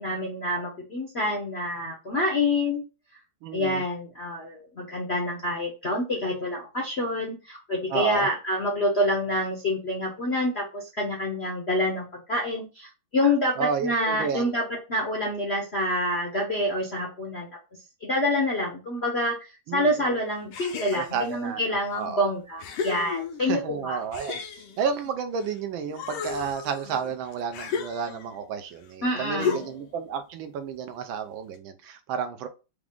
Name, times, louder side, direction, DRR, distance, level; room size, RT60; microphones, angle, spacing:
voice 1, 0.0-2.8 3.5-17.5 18.1-24.0 29.0-29.6, left 1 dB, 55° left, -1 dB, 0.7 m, -27 dB
voice 2, 3.4-3.8 7.9-8.3 13.2-14.5 19.7-20.2 20.9-22.3 23.4-24.4 24.8-32.5, right 6 dB, 75° right, 9 dB, 1.3 m, -31 dB
sound 1, 20.5-21.4 22.0-22.1 22.6-23.6 24.1-25.6 25.9-28.4 29.4-30.0, left 6 dB, 80° left, 1.7 m, -34 dB
4.8 x 2.4 x 3.6 m, 0.30 s
omnidirectional pair, 2.3 m